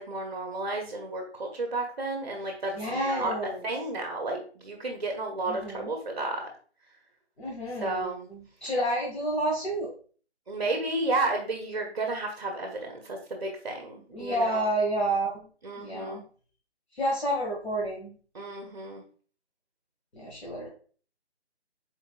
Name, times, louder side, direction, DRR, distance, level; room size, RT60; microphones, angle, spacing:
voice 1, 0.0-3.3 3.6-6.4 7.8-8.3 10.5-14.7 15.6-16.2 18.3-19.0, right 2 dB, 40° right, 3 dB, 0.7 m, -32 dB
voice 2, 2.7-3.7 5.5-5.9 7.4-9.9 14.1-15.4 15.8-16.2 16.9-18.2 20.1-20.7, right 1 dB, 60° left, -5 dB, 1.6 m, -30 dB
4.2 x 4.0 x 2.3 m, 0.42 s
figure-of-eight pair, 155°, 34 cm